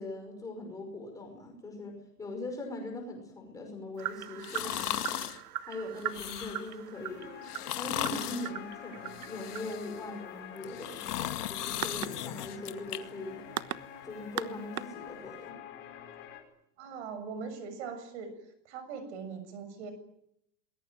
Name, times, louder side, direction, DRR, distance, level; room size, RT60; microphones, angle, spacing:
voice 1, 0.0-5.3 5.7-7.4 7.8-13.4 14.0-15.6, left 2 dB, 5° left, 2 dB, 5.4 m, -41 dB
sound 1, 4.0-15.5, right 12 dB, 60° right, 1.3 m, -41 dB
sound 2, 4.4-5.4 6.0-6.7 7.4-8.5 9.1-10.0 10.6-13.0 13.4-13.5, left 12 dB, 70° left, 2.4 m, -37 dB
sound 3, 6.9-16.4, left 10 dB, 25° left, 4.6 m, -47 dB
voice 2, 16.8-18.4 18.6-19.9, right 5 dB, 45° right, 11 dB, 6.9 m, -41 dB
28.0 x 21.5 x 9.1 m, 0.74 s
supercardioid pair, 180°, 49 cm